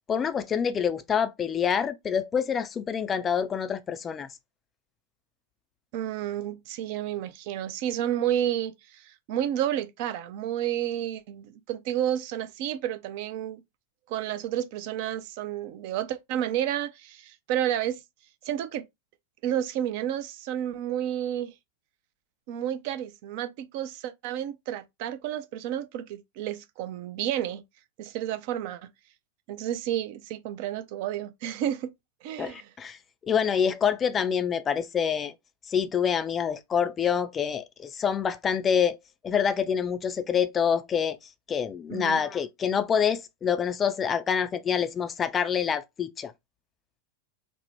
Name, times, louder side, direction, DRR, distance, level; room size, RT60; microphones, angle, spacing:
voice 1, 0.0-4.3 32.4-33.0 33.3-35.3 35.7-39.0 39.2-41.2 41.5-46.3, left 7 dB, 20° left, 0.3 m, -26 dB
voice 2, 5.9-13.6 14.1-18.0 18.4-18.8 19.4-21.5 22.5-27.6 28.0-28.8 29.5-31.9 32.2-32.7 41.9-42.2, right 11 dB, 45° right, 0.4 m, -31 dB
3.5 x 2.0 x 3.0 m
figure-of-eight pair, 90°, 0 cm